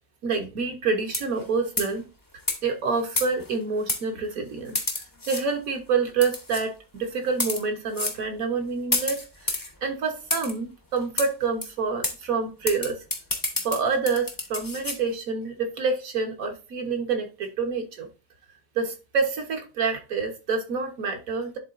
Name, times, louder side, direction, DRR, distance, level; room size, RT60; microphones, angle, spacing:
voice 1, 0.2-2.1 2.6-4.8 5.3-13.0 13.6-18.1 18.7-21.6, right 4 dB, 65° right, 1.4 m, -27 dB
sound 1, 1.1-1.4 1.8-2.0 2.5-2.6 3.2-3.5 3.9-4.0 4.7-5.4 6.2-6.6 7.3-7.6 7.9-8.2 8.9-9.7 10.3-10.5 11.2-11.3 11.6-11.7 12.0-12.2 12.7-15.0, left 2 dB, 20° left, 0.6 m, -29 dB
10.5 x 3.7 x 2.5 m
omnidirectional pair, 1.6 m